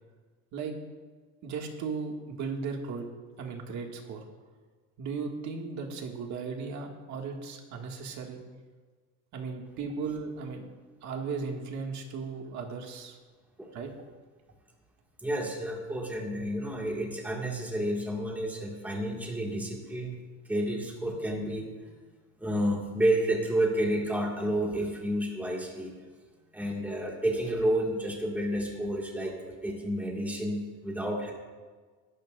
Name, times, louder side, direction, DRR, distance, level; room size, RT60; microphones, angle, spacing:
voice 1, 1.4-3.1 3.4-4.2 5.0-8.4 9.3-10.6 11.0-13.2 13.7-13.9, right 5 dB, 55° right, 1 dB, 2.1 m, -36 dB
voice 2, 15.2-20.2 20.5-21.9 22.4-25.9 26.5-31.3, right 1 dB, 5° right, -2 dB, 2.0 m, -30 dB
22.0 x 12.0 x 2.6 m, 1.4 s
cardioid pair, 150°, 33 cm